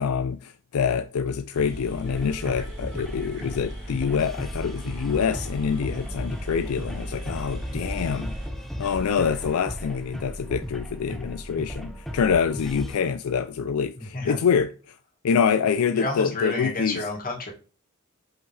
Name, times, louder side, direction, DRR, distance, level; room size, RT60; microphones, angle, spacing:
voice 1, 0.0-8.3 8.8-15.0 15.2-17.1, left 6 dB, 75° left, 0.4 m, -26 dB
sound 1, 1.3-1.4 1.5-9.4, equal, 60° right, 2.4 m, -38 dB
sound 2, 2.0-13.0, equal, ahead, 0.7 m, -36 dB
voice 2, 14.0-14.4 15.9-17.5, left 2 dB, 40° left, 2.2 m, -30 dB
5.8 x 5.2 x 3.3 m
head